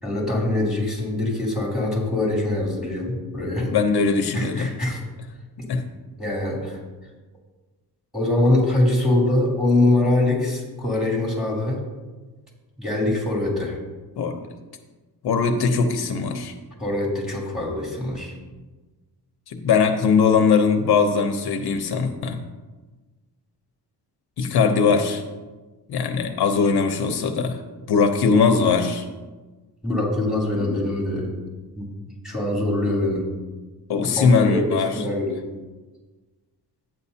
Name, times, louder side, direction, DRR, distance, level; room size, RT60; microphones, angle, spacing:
voice 1, 0.0-3.7 4.3-5.0 6.2-6.8 8.1-11.8 12.8-13.8 16.8-18.3 29.8-31.3 31.8-31.9 32.2-33.2 34.2-35.3, left 2 dB, ahead, -4 dB, 3.2 m, -23 dB
voice 2, 3.6-4.7 5.7-5.8 14.2-14.5 15.2-16.5 19.5-22.4 24.4-25.2 25.9-27.6 27.9-29.1 33.9-35.0, left 5 dB, 70° left, 6 dB, 0.8 m, -20 dB
11.5 x 8.9 x 2.8 m, 1.3 s
cardioid pair, 100°, 40 cm